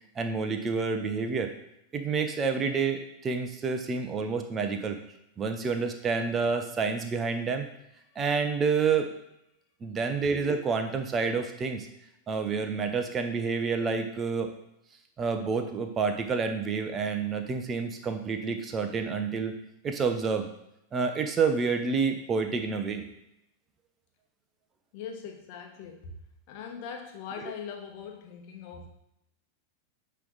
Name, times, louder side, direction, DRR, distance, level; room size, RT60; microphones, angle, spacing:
voice 1, 0.2-1.5 1.9-5.0 5.4-7.6 8.2-9.1 9.8-11.9 12.3-14.5 15.2-19.5 19.8-20.5 20.9-23.0, right 5 dB, 25° right, 6 dB, 0.8 m, -28 dB
voice 2, 24.9-26.1 26.5-28.9, left 6 dB, 45° left, 2 dB, 1.2 m, -41 dB
9.2 x 3.3 x 4.0 m, 0.83 s
figure-of-eight pair, 90°, 0 cm